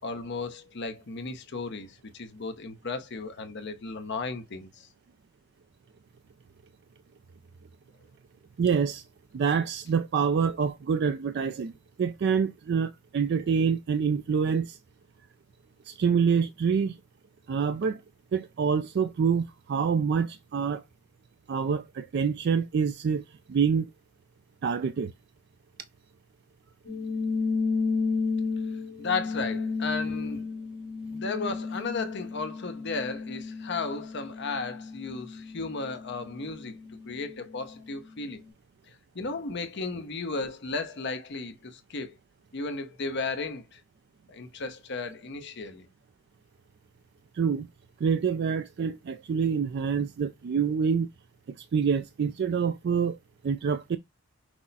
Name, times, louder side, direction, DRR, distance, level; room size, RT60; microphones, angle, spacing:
voice 1, 0.0-4.9 29.0-30.5 31.1-36.8 37.0-38.4 39.1-42.2 42.5-43.8 44.3-45.9, left 3 dB, 55° left, 0.7 m, -34 dB
voice 2, 8.6-9.0 9.3-11.7 12.0-14.8 15.9-17.0 17.5-18.0 18.3-20.8 21.5-23.2 23.5-23.9 24.6-25.1 47.4-47.7 48.0-51.1 51.6-53.2 53.4-54.0, right 6 dB, 50° right, 0.3 m, -26 dB
sound 1, 26.8-37.7, left 4 dB, 70° left, 1.9 m, -33 dB
6.1 x 2.1 x 4.0 m
head